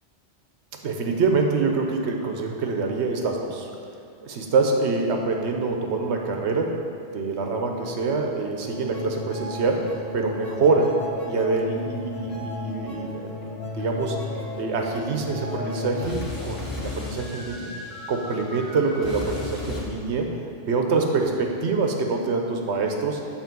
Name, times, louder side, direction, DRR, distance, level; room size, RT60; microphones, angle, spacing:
voice 1, 0.8-3.7 4.2-6.7 7.1-9.8 10.1-10.9 11.3-14.2 14.6-17.7 18.1-20.3 20.7-23.2, right 4 dB, 70° right, 2 dB, 1.1 m, -25 dB
sound 1, 8.6-19.8, left 2 dB, 55° left, 1.8 m, -34 dB
8.3 x 4.2 x 6.0 m, 2.4 s
omnidirectional pair, 1.2 m